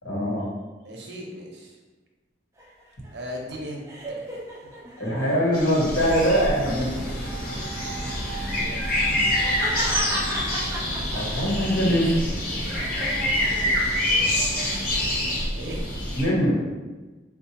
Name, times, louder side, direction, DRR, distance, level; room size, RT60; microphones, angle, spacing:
voice 1, 0.0-0.5 5.0-7.1 11.1-12.4 16.1-16.6, equal, 75° left, -5 dB, 1.1 m, -23 dB
voice 2, 0.8-1.8 3.1-3.8 4.2-4.4 8.5-9.0 9.9-10.5 11.9-12.1 15.5-15.8, equal, 60° right, -1 dB, 0.7 m, -38 dB
sound 1, 2.6-5.6 6.2-6.8 8.6-11.7 12.1-14.3, right 1 dB, 15° right, 0.4 m, -36 dB
sound 2, 5.5-16.3, left 1 dB, 50° left, 0.9 m, -26 dB
4.3 x 2.2 x 2.9 m, 1.2 s
head